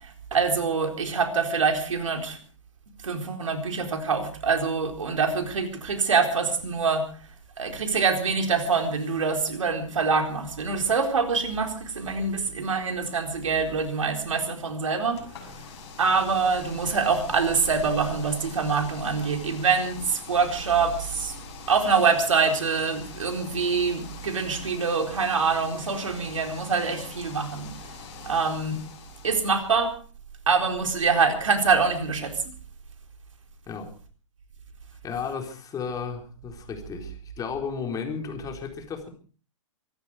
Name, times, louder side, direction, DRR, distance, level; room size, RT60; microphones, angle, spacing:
voice 1, 0.0-2.4 3.0-7.1 7.6-15.3 16.0-21.3 21.7-27.7 28.2-28.8 29.2-29.9 30.5-32.5, right 5 dB, 80° right, 5 dB, 4.1 m, -25 dB
sound 1, 15.1-29.8, left 7 dB, 60° left, 6.7 m, -44 dB
voice 2, 35.0-39.1, left 6 dB, 20° left, 4 dB, 4.1 m, -33 dB
24.5 x 11.5 x 4.9 m, 0.41 s
hypercardioid pair, 115°, 16 cm